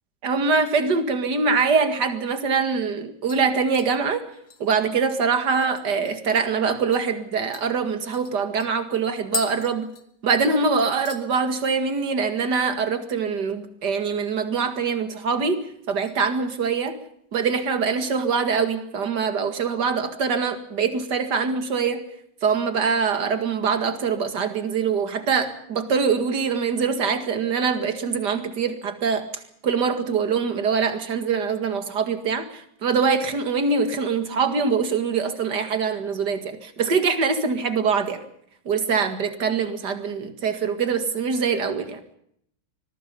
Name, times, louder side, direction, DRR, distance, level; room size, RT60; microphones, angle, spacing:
voice 1, 0.2-4.3 4.6-9.9 10.2-17.0 17.3-22.0 22.4-29.3 29.6-38.2 38.7-42.0, right 5 dB, 55° right, 8 dB, 2.6 m, -23 dB
sound 1, 2.2-2.3 2.7-3.0 3.3-6.1 6.5-6.6 6.9-7.1 7.5-10.5 10.8-11.3 11.6-12.0 12.3-12.4 14.5-15.1 15.5-16.2 16.6-16.9 17.4-18.3 18.7-18.8, left 5 dB, 65° left, 2.7 m, -40 dB
25.0 x 22.0 x 5.4 m, 0.69 s
omnidirectional pair, 2.2 m